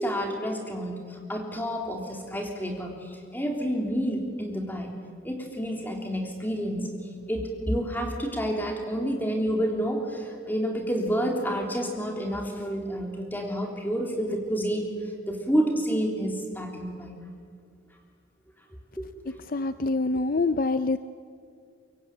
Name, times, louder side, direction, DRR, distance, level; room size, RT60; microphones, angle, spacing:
voice 1, 0.0-5.0 5.2-14.9 15.3-17.1 19.0-19.1, equal, 10° left, 2 dB, 3.4 m, -29 dB
voice 2, 19.5-21.0, left 3 dB, 45° left, 12 dB, 0.6 m, -25 dB
24.0 x 23.0 x 9.0 m, 2.2 s
head